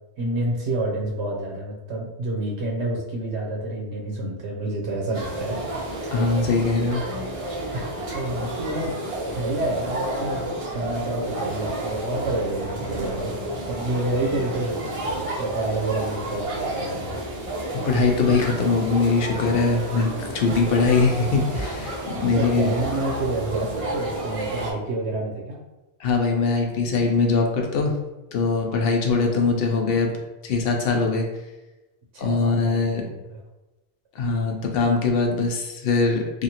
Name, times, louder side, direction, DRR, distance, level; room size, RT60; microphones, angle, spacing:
voice 1, 0.2-5.6 5.9-6.3 7.7-7.8 8.1-8.9 9.4-10.4 10.7-13.3 13.7-14.8 15.4-17.2 22.3-25.6 29.3-29.5 32.1-33.4 34.2-34.3, right 2 dB, 85° right, -1 dB, 0.9 m, -28 dB
sound 1, 5.1-24.7, right 1 dB, 40° right, 0.5 m, -30 dB
voice 2, 6.1-7.0 17.9-22.7 26.0-27.9 28.3-30.1 30.4-31.3 32.2-33.0 34.2-36.4, left 4 dB, 65° left, 2 dB, 0.7 m, -22 dB
2.8 x 2.5 x 2.8 m, 1.0 s
omnidirectional pair, 1.1 m